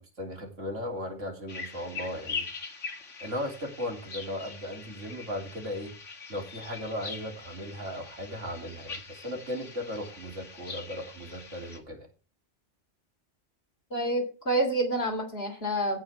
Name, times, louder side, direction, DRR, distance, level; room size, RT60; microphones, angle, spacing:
voice 1, 0.0-2.5 3.2-5.9 6.3-12.1, left 1 dB, 85° right, 2 dB, 3.5 m, -37 dB
sound 1, 1.5-11.8, left 4 dB, 80° left, 2.2 m, -42 dB
voice 2, 13.9-16.0, right 1 dB, 55° left, 4 dB, 3.5 m, -28 dB
16.5 x 5.8 x 4.5 m, 0.34 s
omnidirectional pair, 1.2 m